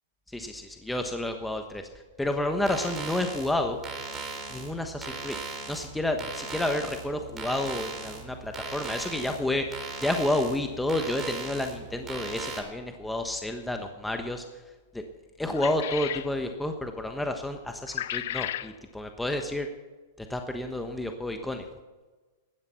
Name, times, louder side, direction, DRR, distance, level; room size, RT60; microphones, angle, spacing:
voice 1, 0.3-1.8 2.2-3.8 4.5-5.4 5.7-9.6 10.0-14.4 14.9-15.0 15.4-19.7 20.2-21.7, left 1 dB, 5° left, 5 dB, 1.2 m, -30 dB
sound 1, 2.6-12.6, right 4 dB, 20° right, 4.0 m, -38 dB
sound 2, 15.5-16.3 17.9-18.7, left 12 dB, 65° left, 0.6 m, -33 dB
15.0 x 12.0 x 5.8 m, 1.2 s
hypercardioid pair, 120°, 0 cm